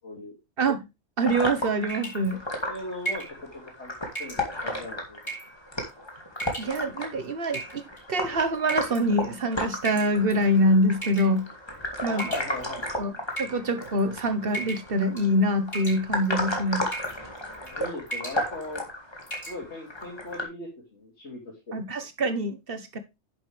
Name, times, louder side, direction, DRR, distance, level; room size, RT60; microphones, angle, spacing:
voice 1, 0.0-0.4 2.6-3.9 4.2-5.3 12.0-12.9 17.6-18.8 19.5-21.8, left 2 dB, 80° left, 3.0 m, -39 dB
sound 1, 1.2-20.4, left 1 dB, 25° left, 2.3 m, -34 dB
voice 2, 1.2-2.4 6.6-7.8 8.1-11.5 12.0-12.3 13.0-13.1 13.4-16.9 21.7-23.0, equal, 55° right, 1.4 m, -25 dB
sound 2, 1.9-2.3 3.0-3.4 4.1-4.4 5.2-5.6 6.3-6.8 7.5-8.0 8.7-9.0 9.8-10.4 11.0-11.4 12.2-12.8 13.3-14.0 14.5-14.9 15.2-15.4 15.7-16.3 16.9-17.2 17.5-17.8 18.1-18.4 18.8-18.9 19.3-19.6, right 2 dB, 45° left, 5.8 m, -35 dB
10.5 x 7.2 x 3.4 m
omnidirectional pair, 1.1 m